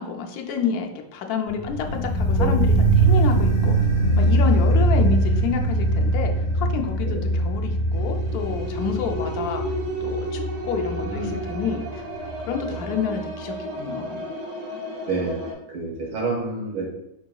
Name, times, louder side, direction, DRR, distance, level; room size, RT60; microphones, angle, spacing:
voice 1, 0.0-3.7 4.2-12.0 12.5-14.2, left 7 dB, 85° left, 3 dB, 1.1 m, -29 dB
sound 1, 1.5-12.5 12.8-12.9, right 2 dB, 55° left, 0.6 m, -22 dB
sound 2, 7.9-15.5, equal, 60° right, 0.4 m, -32 dB
voice 2, 11.0-11.3 12.7-12.8 15.1-16.9, right 3 dB, 80° right, -4 dB, 1.9 m, -28 dB
4.6 x 3.8 x 2.3 m, 0.85 s
omnidirectional pair, 1.6 m